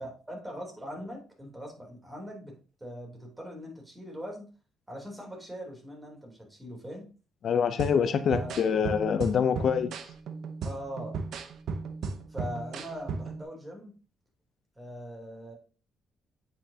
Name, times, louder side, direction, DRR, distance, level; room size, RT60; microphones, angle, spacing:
voice 1, 0.0-2.5 2.8-4.5 4.9-7.1 8.3-8.5 10.6-11.2 12.3-13.9 14.8-15.6, equal, 15° right, 3.2 m, -41 dB
voice 2, 7.4-9.9, left 7 dB, 60° left, 0.5 m, -25 dB
sound 1, 7.8-13.4, right 4 dB, 70° right, 0.8 m, -36 dB
8.8 x 5.7 x 2.8 m
cardioid pair, 90°, 0 cm